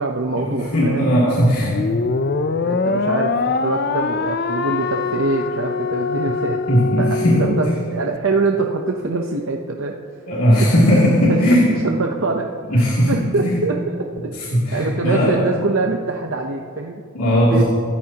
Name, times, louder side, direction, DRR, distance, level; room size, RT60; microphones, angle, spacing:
voice 1, 0.0-1.8 2.7-6.6 7.0-9.9 10.6-10.7 11.3-14.3 14.7-17.0 17.5-17.6, right 3 dB, 65° right, 1 dB, 0.8 m, -24 dB
voice 2, 0.7-1.7 6.7-7.4 10.3-11.7 12.7-13.5 14.5-15.3 17.1-17.6, equal, 90° left, -7 dB, 2.9 m, -17 dB
sound 1, 1.6-8.2, left 4 dB, 45° left, 0.5 m, -23 dB
25.5 x 14.0 x 2.9 m, 2.4 s
head